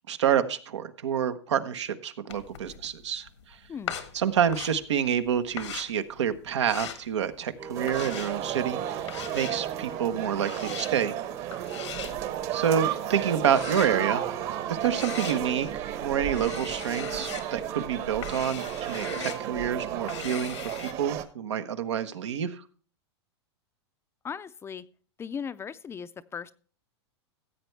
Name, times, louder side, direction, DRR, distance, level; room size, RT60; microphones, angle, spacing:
voice 1, 0.1-3.3 4.1-11.1 12.5-14.2 14.7-22.6, right 8 dB, 85° right, 10 dB, 1.1 m, -28 dB
sound 1, 2.3-20.9, left 9 dB, 85° left, 1.6 m, -41 dB
sound 2, 7.6-20.2, right 6 dB, 20° right, 0.7 m, -42 dB
sound 3, 7.7-21.2, right 12 dB, 45° right, 1.3 m, -34 dB
voice 2, 24.2-24.8 25.2-26.5, left 7 dB, 15° left, 14 dB, 0.5 m, -37 dB
15.5 x 8.1 x 3.3 m, 0.39 s
hypercardioid pair, 120°, 15 cm